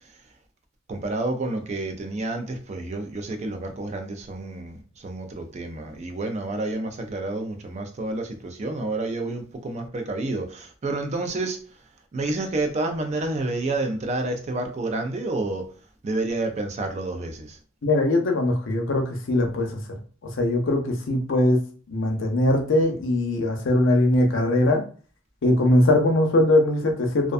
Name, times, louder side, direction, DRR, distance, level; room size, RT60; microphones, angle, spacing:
voice 1, 0.9-4.8 5.0-11.6 12.1-15.7 16.0-17.6, right 2 dB, 35° right, 5 dB, 0.4 m, -29 dB
voice 2, 17.8-19.7 20.3-21.6 21.9-24.8 25.4-27.3, left 1 dB, 65° left, 3 dB, 0.5 m, -21 dB
2.4 x 2.2 x 2.4 m, 0.40 s
head